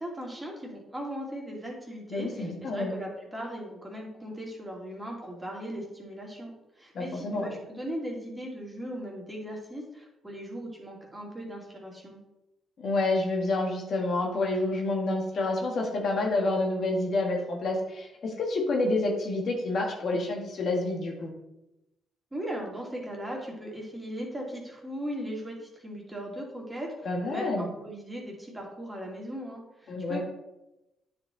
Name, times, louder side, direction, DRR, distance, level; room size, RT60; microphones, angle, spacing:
voice 1, 0.0-12.2 22.3-30.2, equal, 15° right, -1 dB, 2.3 m, -38 dB
voice 2, 2.1-3.0 6.9-7.6 12.8-21.3 27.0-27.7 29.9-30.2, left 2 dB, 55° left, 1 dB, 1.5 m, -28 dB
9.2 x 4.6 x 3.7 m, 0.94 s
cardioid pair, 90°, 0 cm